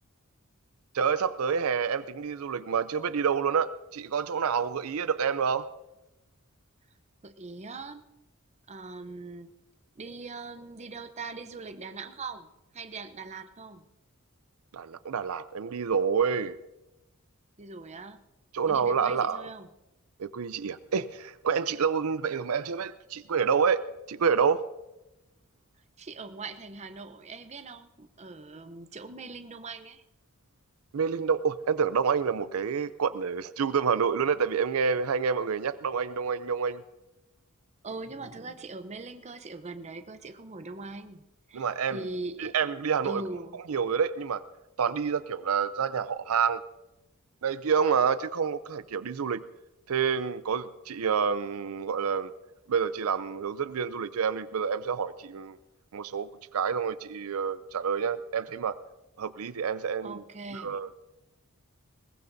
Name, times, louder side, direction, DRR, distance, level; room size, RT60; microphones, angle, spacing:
voice 1, 0.9-5.7 14.7-16.5 18.5-19.4 20.2-24.7 30.9-36.8 41.5-42.1 42.4-43.2 43.7-44.4 44.8-46.6 47.4-49.4 49.9-52.3 52.7-55.6 55.9-58.8 59.2-60.2 60.5-61.0, right 6 dB, 75° right, 14 dB, 0.5 m, -28 dB
voice 2, 7.2-8.0 8.7-9.5 10.0-13.8 17.6-18.2 18.7-19.7 26.0-30.0 37.8-41.6 41.9-42.5 43.0-43.6 60.0-60.7, right 3 dB, 30° right, 9 dB, 0.7 m, -41 dB
21.0 x 19.5 x 2.7 m, 0.97 s
head